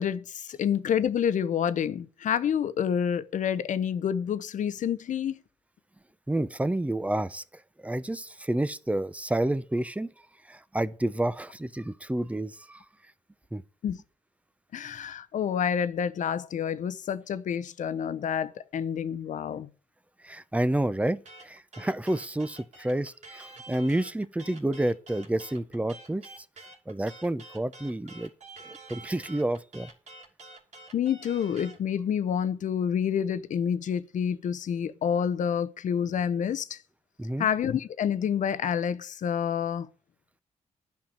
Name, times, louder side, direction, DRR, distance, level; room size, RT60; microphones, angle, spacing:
voice 1, 0.0-5.4 13.8-14.0 14.7-19.7 30.9-36.8 37.4-39.9, left 8 dB, 70° left, 0.8 m, -28 dB
voice 2, 6.3-7.4 7.8-10.1 10.5-12.8 13.5-13.6 20.2-26.3 26.9-28.3 28.7-29.9 37.2-37.5, right 1 dB, 10° right, 0.8 m, -29 dB
sound 1, 21.2-31.8, right 3 dB, 60° right, 2.9 m, -48 dB
10.5 x 5.8 x 8.7 m
supercardioid pair, 55°, 14 cm